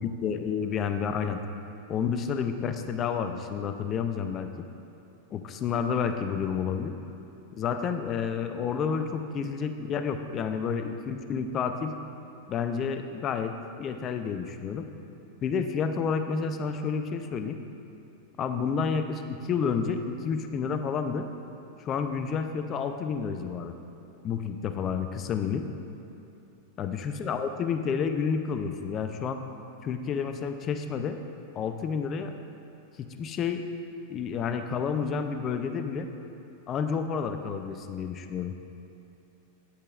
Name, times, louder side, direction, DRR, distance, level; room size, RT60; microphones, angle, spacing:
voice 1, 0.0-1.4 1.9-4.7 5.3-6.9 7.6-11.9 12.5-13.5 13.8-14.9 15.4-17.6 18.4-21.3 21.8-23.7 24.2-25.6 26.8-29.4 29.8-31.2 31.6-32.3 33.0-33.6 34.1-36.1 36.7-38.5, left 6 dB, 35° left, 7 dB, 0.5 m, -30 dB
8.6 x 8.3 x 2.5 m, 2.8 s
hypercardioid pair, 95°, 0 cm